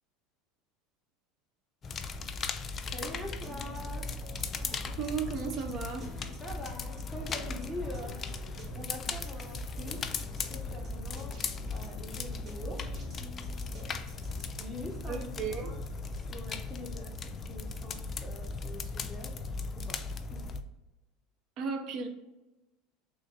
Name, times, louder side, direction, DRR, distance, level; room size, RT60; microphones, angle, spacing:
sound 1, 1.8-20.6, left 4 dB, 30° left, 0.3 m, -38 dB
voice 1, 2.9-4.1 6.4-8.2 8.4-10.0 10.5-11.4 11.7-12.8 14.6-15.8 16.2-19.3 19.8-20.0 20.3-20.4, left 1 dB, 10° right, 0 dB, 1.1 m, -44 dB
sound 2, 3.2-14.5, equal, 35° right, 1.1 m, -45 dB
voice 2, 4.9-6.1 15.0-15.7 21.6-22.1, right 5 dB, 55° right, 6 dB, 0.5 m, -35 dB
sound 3, 7.1-16.6, right 1 dB, 85° right, 1.3 m, -60 dB
3.3 x 2.6 x 3.8 m, 1.0 s
supercardioid pair, 105°, 0 cm